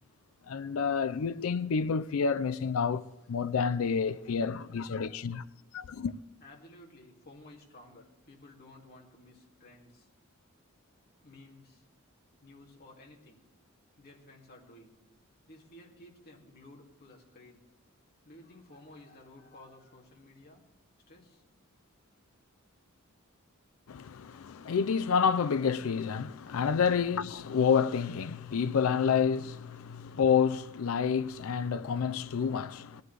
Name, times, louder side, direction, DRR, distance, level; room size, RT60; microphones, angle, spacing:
voice 1, 0.5-5.4 5.7-6.1 23.9-33.0, left 6 dB, 70° left, 0.4 m, -29 dB
voice 2, 4.1-5.3 6.4-10.1 11.2-11.8 12.4-13.5 14.0-15.0 15.5-17.6 18.2-20.7 21.1-21.4 26.5-26.6, left 1 dB, 50° left, 2.4 m, -54 dB
18.0 x 13.0 x 3.3 m
head